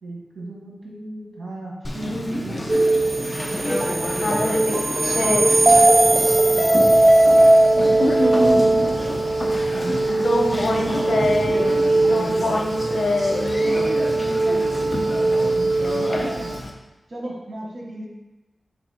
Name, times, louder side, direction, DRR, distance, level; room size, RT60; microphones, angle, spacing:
voice 1, 0.0-2.6 6.1-7.0 9.4-11.1 12.0-12.5 13.6-16.6 17.1-18.1, right 1 dB, 75° right, -3 dB, 1.7 m, -35 dB
Conversation, 1.8-16.7, left 1 dB, 20° left, 0.8 m, -30 dB
sound 1, 2.7-16.6, right 2 dB, 40° right, 0.5 m, -19 dB
voice 2, 4.2-5.4 8.0-8.9 10.1-11.6 12.1-13.7, left 1 dB, 60° left, 0 dB, 1.1 m, -24 dB
5.7 x 4.2 x 4.3 m, 1.1 s
wide cardioid pair, 110°, 0 cm